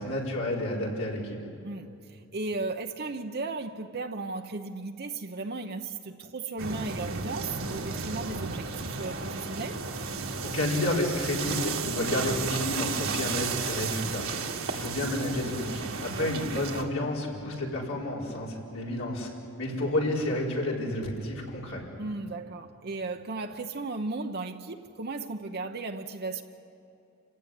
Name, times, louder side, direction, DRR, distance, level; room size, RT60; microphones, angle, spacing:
voice 1, 0.0-1.4 10.4-14.3 14.7-19.3 19.6-21.8, left 1 dB, 80° left, -2 dB, 4.7 m, -30 dB
voice 2, 1.6-9.8 16.1-16.5 22.0-26.4, right 3 dB, 50° right, 5 dB, 0.9 m, -36 dB
sound 1, 6.6-16.8, right 4 dB, 70° right, 1.9 m, -33 dB
28.0 x 16.0 x 9.7 m, 2.8 s
head